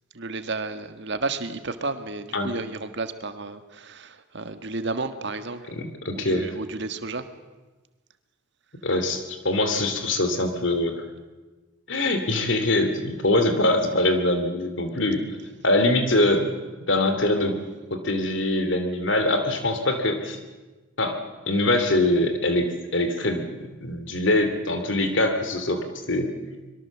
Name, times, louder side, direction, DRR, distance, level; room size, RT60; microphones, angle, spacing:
voice 1, 0.1-5.7 6.1-7.3, right 3 dB, 60° right, 9 dB, 1.6 m, -32 dB
voice 2, 5.7-6.5 8.8-11.0 11.9-15.2 15.6-16.5 16.9-17.6 17.9-20.4 21.0-21.2 21.5-23.5 23.8-26.3, left 1 dB, 65° left, 7 dB, 2.8 m, -23 dB
24.5 x 22.5 x 7.3 m, 1.2 s
head